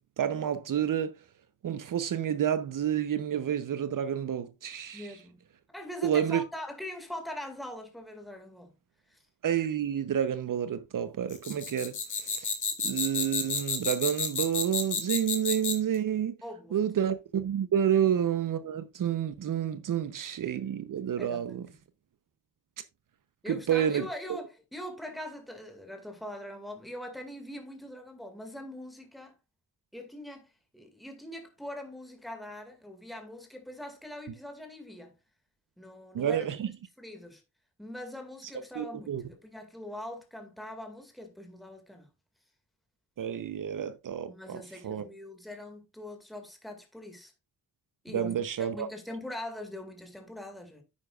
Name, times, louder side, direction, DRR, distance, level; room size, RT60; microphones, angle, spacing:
voice 1, 0.2-1.1 1.6-5.1 6.0-6.4 9.4-12.5 12.8-16.4 16.7-21.7 23.5-24.1 36.1-36.7 38.8-39.2 43.2-45.0 48.1-48.9, right 9 dB, 60° right, 0.8 m, -29 dB
voice 2, 4.9-5.5 5.7-8.7 9.1-9.2 16.4-16.9 21.2-21.8 23.4-29.3 29.9-35.2 35.8-36.7 37.0-37.4 37.8-42.1 44.3-47.3 48.0-50.8, left 1 dB, ahead, 2.1 m, -42 dB
sound 1, 11.3-15.9, left 5 dB, 55° left, 2.5 m, -31 dB
9.7 x 9.7 x 2.4 m
cardioid pair, 105°, 36 cm